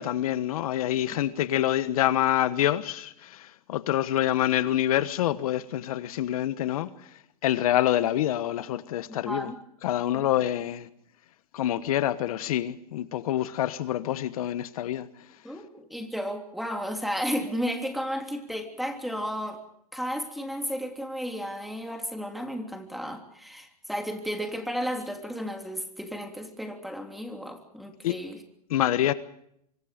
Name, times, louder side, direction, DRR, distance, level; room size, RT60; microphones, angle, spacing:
voice 1, 0.0-6.9 7.4-9.5 9.8-10.9 11.5-15.1 28.0-28.2 28.7-29.1, left 12 dB, 65° left, 1.2 m, -26 dB
voice 2, 9.1-9.6 15.4-19.6 19.9-28.4, equal, ahead, 3.2 m, -33 dB
25.0 x 25.0 x 5.1 m
hypercardioid pair, 135°, 20 cm